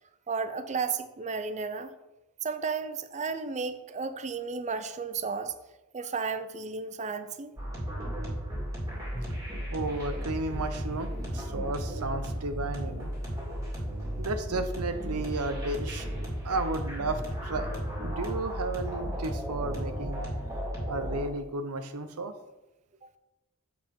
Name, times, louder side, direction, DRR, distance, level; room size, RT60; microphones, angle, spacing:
voice 1, 0.3-1.9 2.4-5.5 5.9-7.6, right 5 dB, 30° right, 11 dB, 0.5 m, -33 dB
sound 1, 7.6-21.2, equal, 15° right, 2.3 m, -34 dB
voice 2, 9.7-13.1 14.2-16.1 16.4-17.7 18.0-20.3 20.9-22.3, right 2 dB, 80° right, 9 dB, 0.8 m, -33 dB
7.5 x 4.8 x 5.4 m, 1.0 s
head